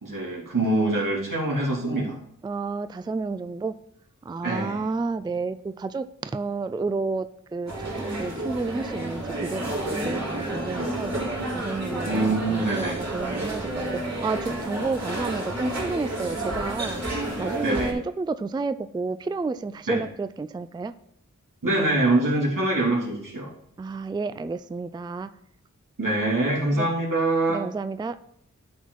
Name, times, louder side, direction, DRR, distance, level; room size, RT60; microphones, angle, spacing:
voice 1, 0.0-2.2 4.4-4.9 12.0-13.0 16.8-16.9 17.6-18.0 19.9-20.0 21.6-23.5 26.0-27.6, right 2 dB, 85° right, -4 dB, 2.7 m, -24 dB
voice 2, 2.4-3.7 4.2-7.3 7.5-9.6 10.0-11.1 11.5-17.0 17.4-20.9 23.8-25.3 26.7-26.9 27.5-28.2, right 3 dB, 15° right, 12 dB, 0.3 m, -30 dB
sound 1, 7.7-17.9, right 1 dB, 55° right, 3.4 m, -30 dB
12.0 x 4.3 x 4.7 m, 0.73 s
wide cardioid pair, 55°, 32 cm